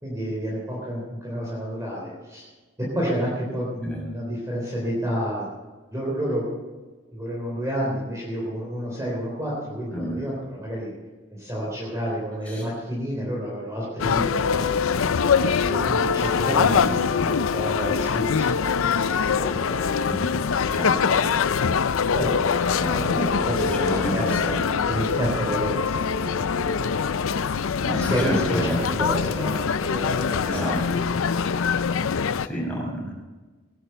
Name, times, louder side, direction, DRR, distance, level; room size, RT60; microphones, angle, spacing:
voice 1, 0.0-2.5 2.9-5.5 5.9-6.4 7.1-10.9 11.3-14.6 15.5-18.6 19.3-20.1 22.1-24.6 24.9-26.7 28.0-30.9, equal, 15° right, -5 dB, 3.7 m, -30 dB
voice 2, 9.9-10.2 12.5-12.6 15.3-15.8 16.5-17.3 20.0-20.3 20.7-21.4 22.8-24.8 27.8-28.8 30.4-31.0 32.4-33.1, equal, 5° left, -4 dB, 6.1 m, -31 dB
sound 1, 14.0-32.5, left 6 dB, 85° left, 0.5 m, -23 dB
17.5 x 11.5 x 6.8 m, 1.3 s
head